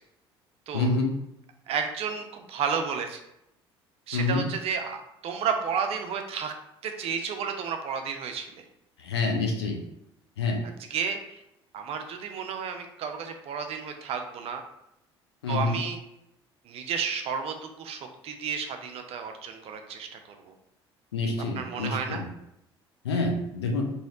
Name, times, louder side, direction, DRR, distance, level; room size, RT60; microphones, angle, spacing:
voice 1, 0.7-1.1 4.1-4.5 9.0-9.8 10.4-10.6 15.4-15.8 21.1-22.2 23.0-23.8, left 3 dB, 75° left, 1 dB, 0.6 m, -27 dB
voice 2, 1.7-3.2 4.1-6.5 6.8-8.6 10.9-11.2 11.7-14.6 15.5-16.0 16.7-20.5 21.6-22.2, right 6 dB, 45° right, 5 dB, 0.5 m, -32 dB
3.1 x 2.7 x 3.7 m, 0.82 s
figure-of-eight pair, 55°, 14 cm